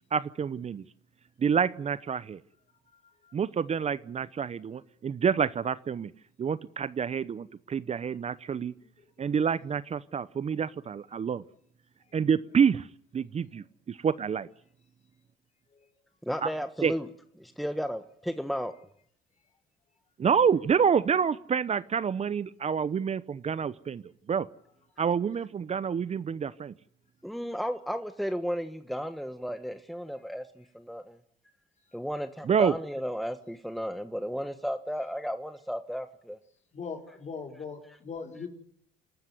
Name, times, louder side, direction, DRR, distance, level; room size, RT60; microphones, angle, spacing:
voice 1, 0.1-0.8 1.4-2.4 3.3-6.1 6.4-8.7 9.2-11.4 12.1-12.9 13.5-14.5 16.4-16.5 16.8-16.9 20.2-24.0 24.3-24.5 25.0-26.7 32.4-32.7, right 7 dB, 35° right, 16 dB, 0.8 m, -27 dB
voice 2, 16.2-17.1 17.4-18.7 27.2-31.2 31.9-36.4, equal, ahead, 8 dB, 1.5 m, -34 dB
voice 3, 36.7-38.5, left 5 dB, 40° left, 3 dB, 5.2 m, -39 dB
28.0 x 13.0 x 9.6 m, 0.67 s
supercardioid pair, 75°, 18 cm